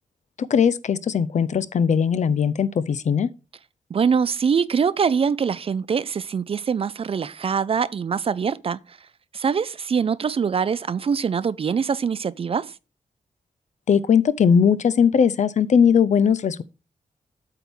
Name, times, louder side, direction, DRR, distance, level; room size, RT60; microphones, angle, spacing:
voice 1, 0.5-3.3 13.9-16.6, left 7 dB, 60° left, 0.5 m, -19 dB
voice 2, 3.9-9.0 9.3-12.7, right 6 dB, 45° right, 0.4 m, -23 dB
8.2 x 3.5 x 6.0 m
wide cardioid pair, 100°, 14 cm